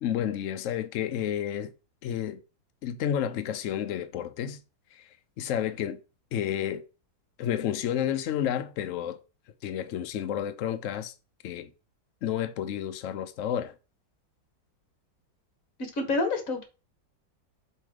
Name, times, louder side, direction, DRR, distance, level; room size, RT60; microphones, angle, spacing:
voice 1, 0.0-1.7 2.0-2.4 2.8-4.6 4.9-5.1 5.4-6.0 6.3-6.8 7.4-9.2 9.6-11.1 11.4-11.7 12.2-13.7, left 10 dB, 80° left, 0.7 m, -30 dB
voice 2, 15.8-16.6, left 2 dB, 50° left, 1.7 m, -28 dB
7.3 x 3.2 x 4.8 m
omnidirectional pair, 2.0 m